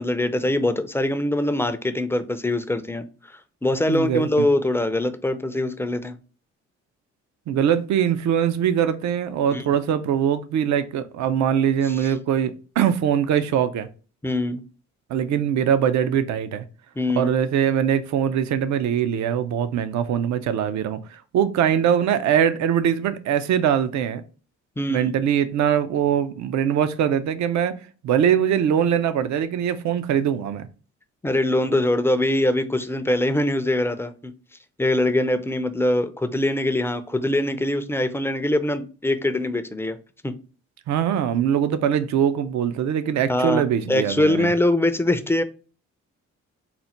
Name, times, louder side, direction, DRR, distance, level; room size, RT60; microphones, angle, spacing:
voice 1, 0.0-3.0 3.6-6.2 9.5-9.7 12.0-12.1 14.2-14.6 17.0-17.3 24.8-25.1 31.2-34.3 34.8-40.0 40.2-40.3 43.3-45.4, left 1 dB, 10° left, 0.4 m, -23 dB
voice 2, 3.9-4.5 7.5-13.9 15.1-16.6 17.2-24.2 24.9-27.8 28.0-30.7 40.9-44.5, right 9 dB, 65° right, 0.6 m, -22 dB
4.1 x 2.1 x 4.2 m
cardioid pair, 90°, 30 cm